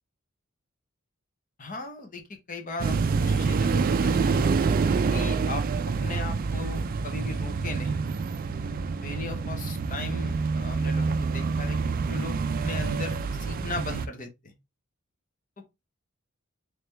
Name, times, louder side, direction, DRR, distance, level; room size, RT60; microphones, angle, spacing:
voice 1, 1.6-4.5 5.1-5.6 6.0-8.0 9.0-14.5 15.6-15.7, left 3 dB, 40° left, 0.9 m, -37 dB
sound 1, 2.8-14.1, right 4 dB, 40° right, 0.3 m, -27 dB
3.3 x 3.2 x 3.1 m
head